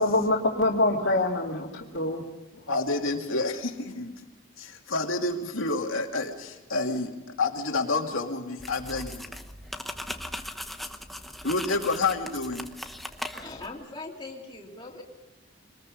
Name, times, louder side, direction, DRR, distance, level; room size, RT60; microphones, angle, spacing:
voice 1, 0.0-2.2, left 2 dB, 60° left, -4 dB, 2.5 m, -25 dB
voice 2, 2.7-4.1 4.6-9.3 11.4-12.7, left 3 dB, 85° left, 2 dB, 2.6 m, -29 dB
sound 1, 8.6-13.7, left 1 dB, ahead, 1.0 m, -39 dB
voice 3, 13.3-15.0, left 2 dB, 20° left, -1 dB, 3.3 m, -40 dB
25.0 x 20.0 x 5.3 m, 1.1 s
head